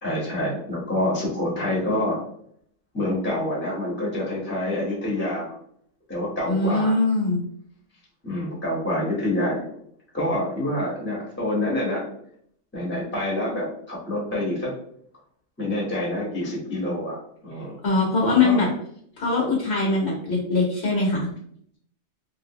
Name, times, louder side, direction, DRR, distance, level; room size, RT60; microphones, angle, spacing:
voice 1, 0.0-2.2 2.9-5.5 6.1-6.9 8.2-9.7 10.1-12.1 12.7-14.8 15.6-17.8 18.3-18.6, left 1 dB, 10° left, -5 dB, 0.9 m, -27 dB
voice 2, 6.4-7.4 17.8-18.7 19.2-21.3, left 3 dB, 55° left, -3 dB, 1.1 m, -22 dB
3.0 x 2.5 x 2.8 m, 0.66 s
omnidirectional pair, 1.4 m